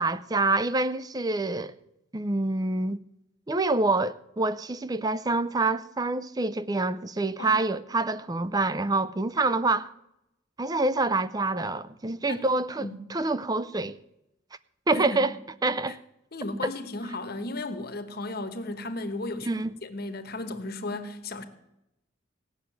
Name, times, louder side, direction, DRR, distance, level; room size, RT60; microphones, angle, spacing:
voice 1, 0.0-1.7 2.1-3.0 3.5-9.9 10.6-14.0 14.9-15.3 15.6-16.0 16.6-16.7 19.4-19.7, right 2 dB, 20° right, 0.4 m, -26 dB
voice 2, 16.3-21.4, left 2 dB, 50° left, 1.1 m, -35 dB
17.0 x 6.5 x 9.1 m
head